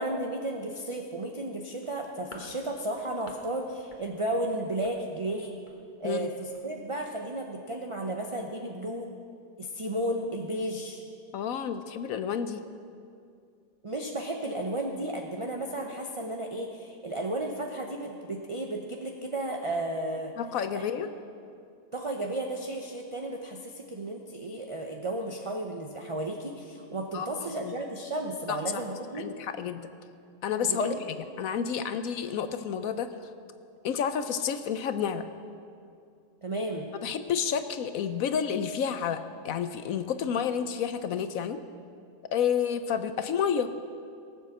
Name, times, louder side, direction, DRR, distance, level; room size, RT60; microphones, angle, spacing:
voice 1, 0.0-5.6 6.0-9.1 9.6-11.0 13.8-20.3 20.7-20.8 21.9-29.2 30.6-31.0 31.8-31.9 36.4-36.9, right 1 dB, 30° right, 1 dB, 0.6 m, -33 dB
sound 1, 1.8-3.5 3.8-4.1 4.3-5.8 6.1-6.3 6.5-6.7 7.0-7.1, left 2 dB, 30° left, 1.3 m, -50 dB
voice 2, 11.3-12.6 20.4-21.1 27.1-27.8 28.5-28.8 29.2-29.8 30.4-30.9 31.4-33.1 33.8-35.2 37.0-39.2 39.4-41.6 42.3-43.7, left 8 dB, 65° left, 10 dB, 1.0 m, -30 dB
18.0 x 7.7 x 7.2 m, 2.4 s
omnidirectional pair, 1.7 m